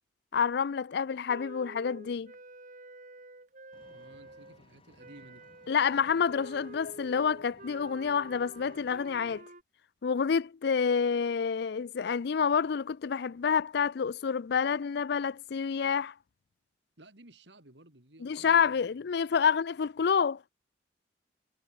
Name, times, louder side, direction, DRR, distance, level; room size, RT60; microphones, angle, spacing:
voice 1, 0.3-2.3 5.7-9.4 10.0-16.1 18.2-20.5, left 6 dB, 65° left, 0.4 m, -28 dB
Wind instrument woodwind instrument, 1.3-4.6 5.0-9.6, right 2 dB, 45° right, 5.3 m, -49 dB
Vehicle, 3.7-9.4, left 2 dB, 30° left, 3.9 m, -61 dB
voice 2, 3.9-5.5 17.0-18.8, right 1 dB, 75° right, 4.3 m, -55 dB
head